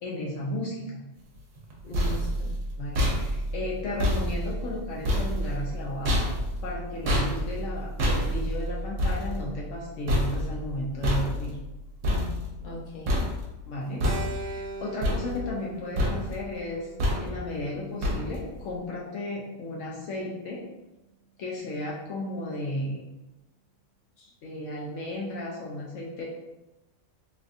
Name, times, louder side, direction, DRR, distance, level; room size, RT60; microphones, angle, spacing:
voice 1, 0.0-1.0 2.8-6.2 6.6-11.6 13.7-16.9 17.2-20.6 21.4-23.0 24.4-26.2, left 1 dB, 75° left, -3 dB, 0.9 m, -34 dB
sound 1, 1.6-12.8 13.1-13.7 14.0-14.7 15.0-15.7 16.0-16.5 17.0-17.5 18.0-18.6, equal, 75° right, 1.0 m, -28 dB
voice 2, 1.8-2.5 12.0-13.2 24.2-24.3, left 1 dB, 45° left, -4 dB, 0.8 m, -39 dB
Keyboard (musical), 14.0-18.4, right 3 dB, 45° right, 0.7 m, -41 dB
3.3 x 2.4 x 2.5 m, 1.0 s
omnidirectional pair, 1.3 m